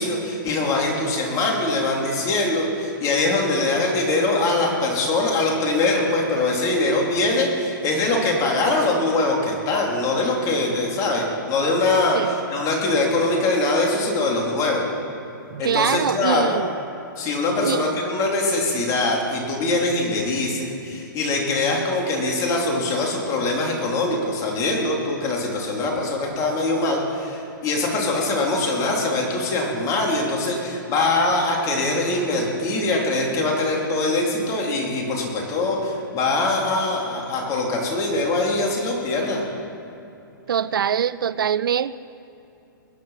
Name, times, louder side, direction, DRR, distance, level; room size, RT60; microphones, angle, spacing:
voice 1, 0.0-14.8 15.6-16.6 17.2-39.4, left 2 dB, 30° left, -1 dB, 3.7 m, -22 dB
voice 2, 15.5-16.7 17.6-17.9 40.5-41.9, right 8 dB, 80° right, 17 dB, 0.4 m, -23 dB
21.5 x 9.7 x 5.9 m, 2.8 s
hypercardioid pair, 125°, 11 cm